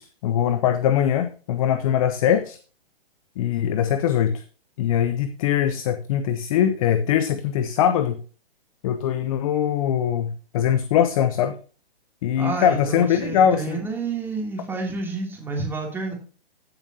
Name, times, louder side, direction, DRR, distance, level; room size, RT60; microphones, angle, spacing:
voice 1, 0.0-2.6 3.4-4.4 4.8-8.2 8.8-11.6 12.2-13.8, left 9 dB, 35° left, 0.7 m, -22 dB
voice 2, 12.4-16.1, right 4 dB, 5° right, 2.7 m, -29 dB
15.0 x 7.3 x 2.8 m
hypercardioid pair, 145°, 30 cm